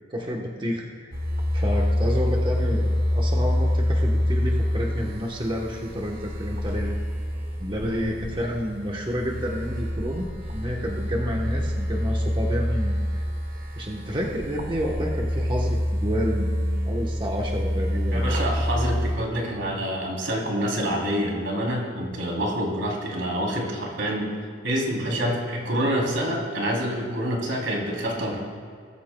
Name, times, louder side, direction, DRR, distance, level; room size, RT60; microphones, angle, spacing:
voice 1, 0.1-1.1 1.5-7.0 7.6-13.2 13.8-18.3, equal, 25° right, -1 dB, 1.0 m, -30 dB
sound 1, 1.1-19.2, equal, 50° right, 1.7 m, -26 dB
voice 2, 18.1-24.3 24.6-28.4, equal, 85° right, -2 dB, 3.1 m, -27 dB
21.5 x 14.0 x 2.2 m, 2.2 s
head